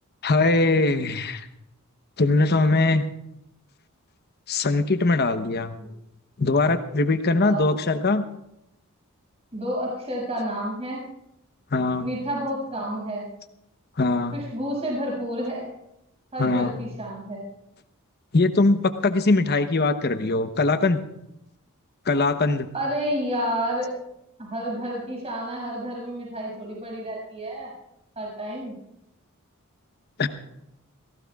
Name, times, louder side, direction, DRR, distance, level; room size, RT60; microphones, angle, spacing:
voice 1, 0.2-1.5 2.2-3.1 4.5-5.8 6.4-8.2 11.7-12.1 14.0-14.4 16.4-16.7 18.3-21.0 22.1-22.7 30.2-30.3, left 3 dB, 45° left, 9 dB, 0.9 m, -21 dB
voice 2, 7.3-8.0 9.5-11.0 12.0-13.3 14.3-15.7 16.3-17.4 22.7-23.9 24.4-27.7 28.1-28.8, equal, 30° right, -3 dB, 6.7 m, -30 dB
28.5 x 17.0 x 2.4 m, 0.84 s
head